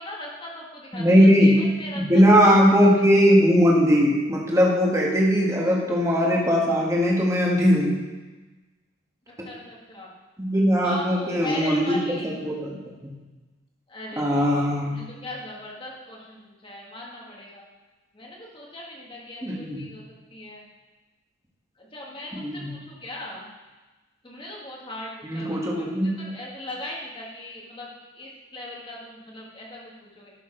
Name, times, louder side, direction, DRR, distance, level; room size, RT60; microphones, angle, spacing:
voice 1, 0.0-2.5 2.9-3.0 9.4-10.1 10.8-12.3 13.9-17.6 18.1-20.0 20.3-20.7 21.8-23.5 24.2-30.3, left 1 dB, 25° left, -3 dB, 1.8 m, -39 dB
voice 2, 0.9-1.5 1.9-8.0 10.4-12.0 12.2-13.1 14.2-14.9 19.4-19.8 22.3-22.7 25.2-26.1, equal, 15° right, -3 dB, 1.6 m, -19 dB
12.0 x 6.8 x 3.9 m, 1.2 s
head